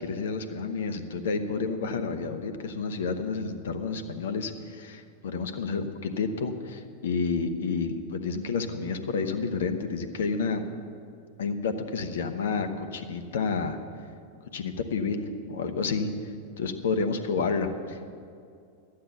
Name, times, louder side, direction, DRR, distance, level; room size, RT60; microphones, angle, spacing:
voice 1, 0.0-10.6 11.4-13.8 14.5-16.1 16.6-18.1, left 4 dB, 60° left, 8 dB, 0.9 m, -30 dB
12.0 x 8.7 x 7.0 m, 2.4 s
figure-of-eight pair, 90°, 0 cm